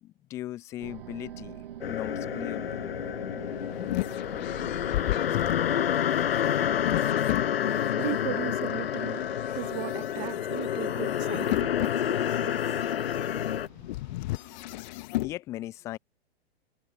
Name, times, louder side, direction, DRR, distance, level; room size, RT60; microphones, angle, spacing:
voice 1, 0.0-2.8 14.9-16.0, left 15 dB, 10° left, 0.3 m, -39 dB
sound 1, 0.8-14.8, right 10 dB, 60° right, 2.2 m, -48 dB
sound 2, 1.8-13.7, left 10 dB, 65° left, 0.9 m, -29 dB
sound 3, 3.1-8.1 8.7-15.3, left 18 dB, 45° left, 1.8 m, -35 dB
voice 2, 6.8-14.2, right 27 dB, 35° right, 1.5 m, -39 dB
figure-of-eight pair, 105°, 32 cm